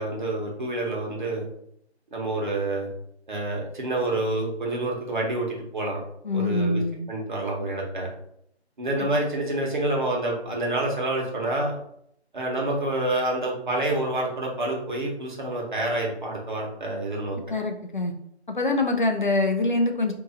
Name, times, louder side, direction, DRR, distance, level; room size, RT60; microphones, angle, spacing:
voice 1, 0.0-1.5 2.1-2.9 3.3-6.0 6.3-6.8 7.1-8.1 8.8-11.8 12.3-17.4, right 1 dB, 45° right, -1 dB, 1.1 m, -28 dB
voice 2, 6.2-7.0 9.0-9.1 17.5-18.1 18.5-20.1, left 2 dB, 50° left, 3 dB, 0.4 m, -24 dB
2.7 x 2.5 x 3.9 m, 0.71 s
figure-of-eight pair, 160°, 33 cm